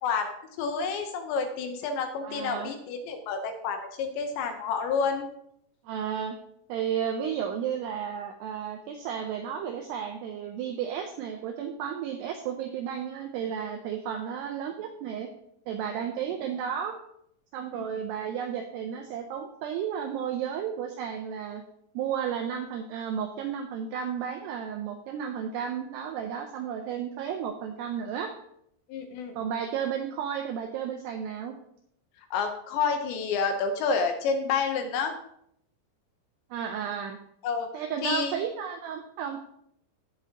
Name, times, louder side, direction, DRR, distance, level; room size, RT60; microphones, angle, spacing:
voice 1, 0.0-0.3 0.6-5.3 17.7-17.8 28.9-29.4 32.3-35.1 37.4-37.7 38.0-38.4, left 5 dB, 75° left, 6 dB, 3.0 m, -29 dB
voice 2, 2.2-2.7 5.8-6.4 6.7-15.3 15.7-17.0 17.5-21.6 21.9-28.3 29.4-31.6 36.5-37.2 37.7-39.4, right 8 dB, 85° right, 5 dB, 2.4 m, -33 dB
17.0 x 6.9 x 2.9 m, 0.73 s
omnidirectional pair, 5.6 m